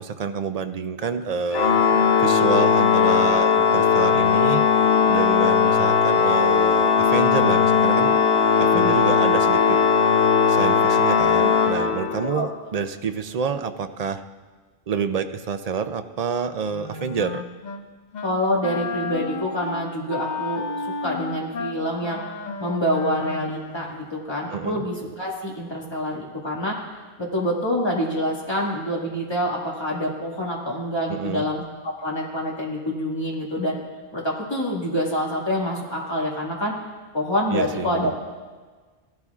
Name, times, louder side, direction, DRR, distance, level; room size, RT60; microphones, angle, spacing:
voice 1, 0.0-1.7 2.2-4.6 5.1-8.2 8.6-9.8 10.5-14.2 14.9-17.4 24.5-24.8 31.1-31.4 37.5-38.1, right 6 dB, 50° right, 9 dB, 0.5 m, -28 dB
Organ, 1.5-12.4, left 6 dB, 80° left, 1.0 m, -18 dB
Wind instrument woodwind instrument, 16.7-17.8 18.1-18.4 18.6-23.9, left 5 dB, 50° left, 0.9 m, -32 dB
voice 2, 18.2-22.2 22.6-26.9 27.2-33.8 34.1-36.7 37.1-38.2, equal, 25° left, -3 dB, 2.0 m, -26 dB
16.0 x 12.0 x 2.4 m, 1.4 s
omnidirectional pair, 1.0 m